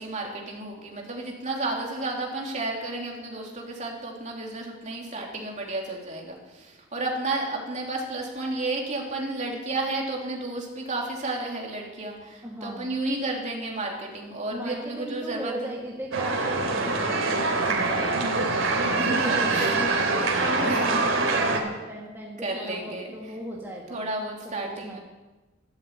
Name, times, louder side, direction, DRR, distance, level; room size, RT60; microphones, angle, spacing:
voice 1, 0.0-15.7 19.0-19.8 20.1-20.3 20.6-21.2 22.4-23.4 23.9-25.0, right 2 dB, 35° right, 0 dB, 3.3 m, -32 dB
voice 2, 12.4-13.0 14.5-18.3 18.8-24.0 24.6-25.0, equal, 10° right, -3 dB, 2.0 m, -36 dB
sound 1, 16.1-21.6, right 3 dB, 75° right, 3.1 m, -24 dB
13.5 x 12.5 x 8.4 m, 1.2 s
head